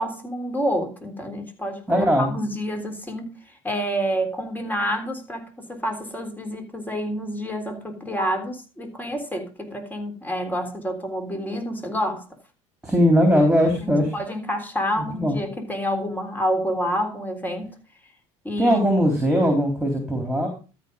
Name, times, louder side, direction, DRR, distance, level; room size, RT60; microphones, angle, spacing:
voice 1, 0.0-12.2 13.8-17.7 18.4-18.8, equal, 10° left, 4 dB, 3.5 m, -28 dB
voice 2, 1.9-2.3 12.8-14.2 15.0-15.4 18.6-20.5, equal, 5° right, 3 dB, 3.7 m, -20 dB
13.0 x 5.5 x 5.3 m, 0.33 s
hypercardioid pair, 80°, 15 cm